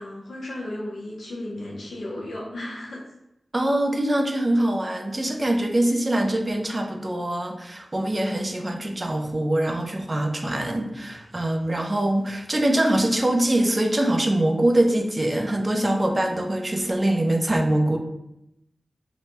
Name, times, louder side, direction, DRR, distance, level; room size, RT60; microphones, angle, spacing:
voice 1, 0.0-3.0 8.7-9.0, left 1 dB, 90° left, -4 dB, 0.7 m, -35 dB
voice 2, 3.5-18.0, right 1 dB, 30° right, 3 dB, 0.4 m, -23 dB
2.9 x 2.2 x 2.8 m, 0.83 s
wide cardioid pair, 95°, 0 cm